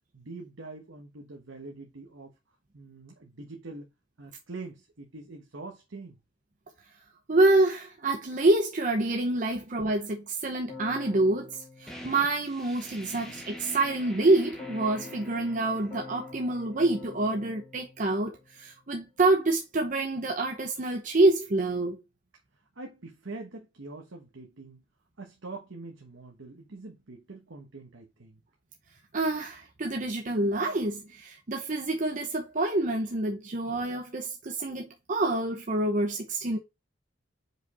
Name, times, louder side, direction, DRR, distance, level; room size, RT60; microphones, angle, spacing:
voice 1, 0.1-2.3 2.7-3.9 4.2-6.2 22.8-24.8 25.2-28.4, right 3 dB, 80° right, 1.1 m, -44 dB
voice 2, 7.3-22.0 29.1-36.6, right 2 dB, 40° right, 0.7 m, -27 dB
Keyboard (musical), 10.7-13.0 14.6-18.9, left 4 dB, 30° left, 2.1 m, -47 dB
sound 1, 11.9-17.3, equal, ahead, 1.3 m, -45 dB
5.2 x 5.0 x 4.2 m
head